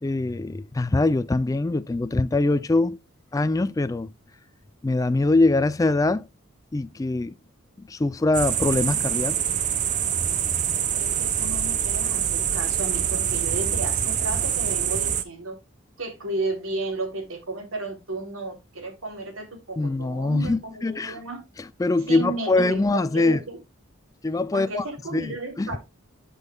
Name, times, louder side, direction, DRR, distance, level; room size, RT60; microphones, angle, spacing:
voice 1, 0.0-3.0 3.3-4.1 4.8-6.3 6.7-7.3 7.8-9.4 19.8-21.2 21.8-23.4 24.2-24.8 25.1-25.7, left 2 dB, 15° left, 0.3 m, -23 dB
sound 1, 8.3-15.2, right 9 dB, 35° right, 0.7 m, -25 dB
voice 2, 10.9-15.6 16.0-21.4 22.1-23.6 24.5-25.8, right 2 dB, 85° right, 3.1 m, -33 dB
11.5 x 5.4 x 2.3 m
head